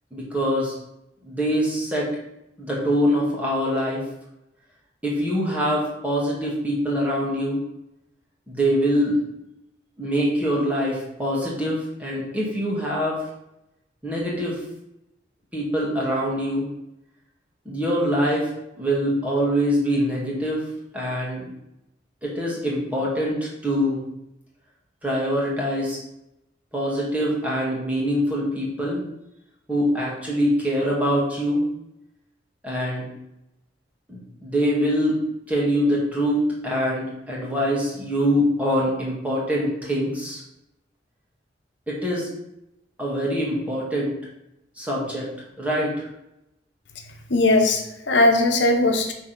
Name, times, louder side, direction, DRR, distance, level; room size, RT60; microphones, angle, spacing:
voice 1, 0.1-0.8 1.2-2.1 2.6-4.0 5.0-7.6 8.5-9.2 10.0-13.2 14.0-14.6 15.5-16.7 17.7-20.7 20.9-21.4 22.2-24.0 25.0-26.0 26.7-29.0 29.7-31.7 32.6-33.1 34.1-35.2 35.5-40.4 41.9-42.3 43.0-44.1 44.8-45.3 45.6-46.1, equal, 10° right, -5 dB, 2.0 m, -24 dB
voice 2, 47.3-49.1, left 2 dB, 85° left, 3 dB, 1.0 m, -19 dB
6.1 x 3.6 x 6.0 m, 0.86 s
head